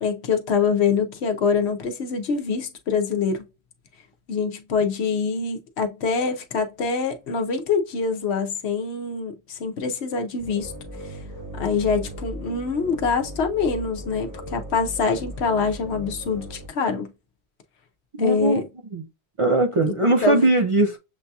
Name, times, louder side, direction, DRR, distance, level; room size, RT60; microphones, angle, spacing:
voice 1, 0.0-3.4 4.3-10.7 11.6-17.1 18.2-18.6 19.9-20.0 20.2-20.5, left 5 dB, 75° left, 1.0 m, -24 dB
sound 1, 10.4-16.7, right 1 dB, 20° right, 1.0 m, -37 dB
voice 2, 18.2-18.6 18.9-19.1 19.4-21.0, right 2 dB, 50° right, 0.3 m, -20 dB
7.1 x 2.7 x 2.3 m
omnidirectional pair, 1.1 m